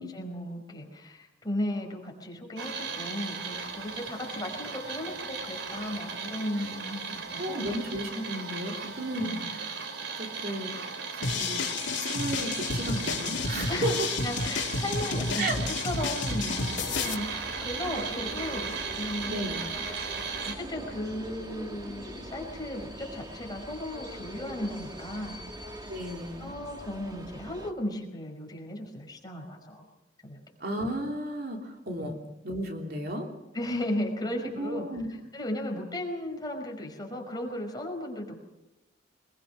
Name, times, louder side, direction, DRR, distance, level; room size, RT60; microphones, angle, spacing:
voice 1, 0.0-7.7 9.2-9.6 13.7-19.3 19.8-25.4 26.4-29.8 30.2-30.4 32.0-32.1 33.5-34.9 35.3-38.4, left 1 dB, 20° left, 1 dB, 5.1 m, -36 dB
sound 1, 2.6-20.5, right 5 dB, 85° right, 3.3 m, -37 dB
voice 2, 7.4-9.8 10.2-10.7 11.1-11.6 11.9-14.1 15.3-15.6 19.3-19.7 25.9-26.5 30.6-32.2 32.4-33.3 34.6-35.1, right 1 dB, 55° right, 1 dB, 3.2 m, -34 dB
sound 2, 11.2-17.1, left 4 dB, 70° left, 2.7 m, -31 dB
sound 3, 16.5-27.7, equal, 20° right, 1.8 m, -42 dB
25.0 x 21.5 x 6.3 m, 0.97 s
head